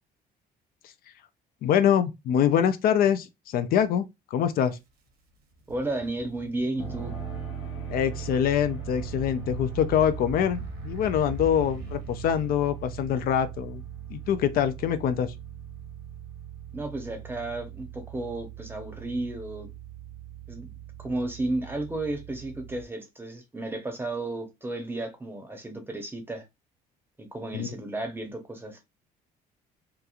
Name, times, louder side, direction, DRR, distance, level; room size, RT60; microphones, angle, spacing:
voice 1, 1.6-4.0 4.3-4.8 7.9-13.8 14.1-15.3 27.5-27.7, left 9 dB, 60° left, 0.4 m, -24 dB
sound 1, 4.7-4.8 5.3-12.9, equal, 75° right, 0.9 m, -43 dB
voice 2, 5.7-7.2 16.7-19.7 20.5-20.7 21.0-26.4 27.2-28.8, right 2 dB, 15° right, 0.7 m, -33 dB
sound 2, 6.8-22.8, right 8 dB, 80° left, 1.1 m, -40 dB
2.9 x 2.3 x 2.4 m
cardioid pair, 110°, 17 cm